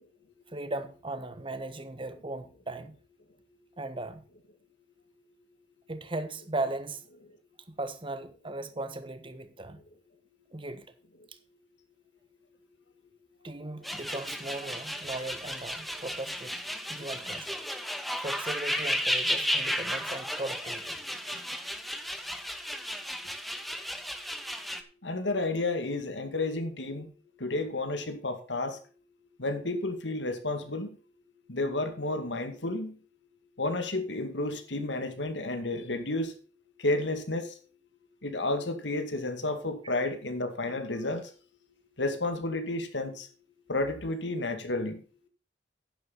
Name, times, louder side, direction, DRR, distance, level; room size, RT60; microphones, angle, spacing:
voice 1, 0.5-3.0 3.8-4.2 5.9-7.0 7.7-9.8 10.5-10.9 13.4-16.5 16.9-17.5 18.2-21.0, right 2 dB, 30° right, 1.4 m, -37 dB
sound 1, 13.8-24.8, equal, ahead, 1.2 m, -34 dB
voice 2, 25.0-27.1 27.4-28.8 29.4-30.9 31.5-33.0 33.6-36.3 36.8-37.6 38.2-41.3 42.0-43.3 43.7-45.0, left 2 dB, 80° left, 2.3 m, -31 dB
11.0 x 10.5 x 4.1 m
head